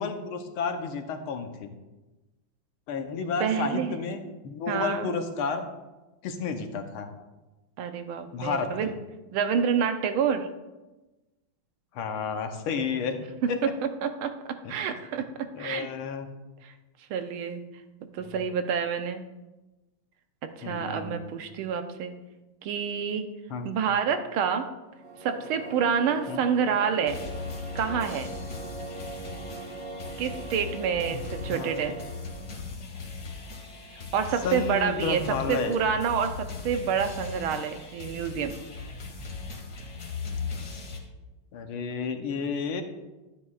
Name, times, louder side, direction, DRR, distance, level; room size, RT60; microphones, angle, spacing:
voice 1, 0.0-1.7 2.9-5.7 6.2-7.1 8.3-8.9 11.9-13.2 13.5-13.6 14.6-14.7 15.5-16.3 18.2-18.4 20.6-21.2 23.5-23.7 26.3-26.4 31.1-31.2 31.5-31.7 34.4-35.8 41.5-42.8, left 5 dB, 85° left, 6 dB, 1.7 m, -31 dB
voice 2, 3.4-3.9 4.7-5.1 7.8-8.9 9.3-10.5 13.6-13.7 14.0-14.3 14.7-15.9 16.6-16.7 17.1-17.6 18.1-19.2 20.6-22.1 22.6-23.3 23.6-24.7 25.2-27.2 27.7-28.3 30.2-32.0 34.1-35.2 35.5-38.5, right 7 dB, 85° right, 8 dB, 1.6 m, -28 dB
sound 1, 24.9-32.7, right 2 dB, 70° right, 1.5 m, -41 dB
sound 2, 27.1-41.0, left 4 dB, 50° left, 1.9 m, -39 dB
12.0 x 9.4 x 2.4 m, 1.1 s
omnidirectional pair, 2.3 m